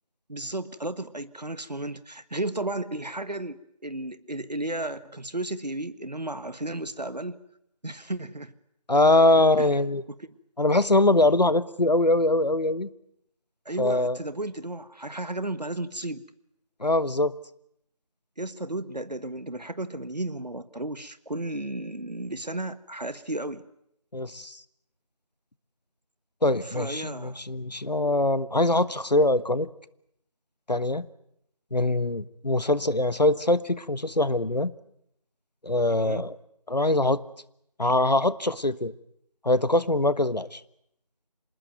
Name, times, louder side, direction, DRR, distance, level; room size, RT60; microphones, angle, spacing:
voice 1, 0.3-7.4 7.8-8.5 9.6-9.7 10.2-10.3 13.6-16.2 18.4-23.6 26.6-27.4 35.9-36.2, right 1 dB, 90° right, 13 dB, 1.5 m, -34 dB
voice 2, 8.9-10.0 10.6-12.9 13.8-14.2 16.8-17.3 24.1-24.6 26.4-29.7 30.7-31.1 31.7-34.7 35.6-36.4 36.7-37.2 37.8-38.9 39.4-40.6, left 2 dB, 90° left, 16 dB, 1.3 m, -23 dB
26.5 x 20.0 x 9.2 m, 0.76 s
figure-of-eight pair, 175°, 21 cm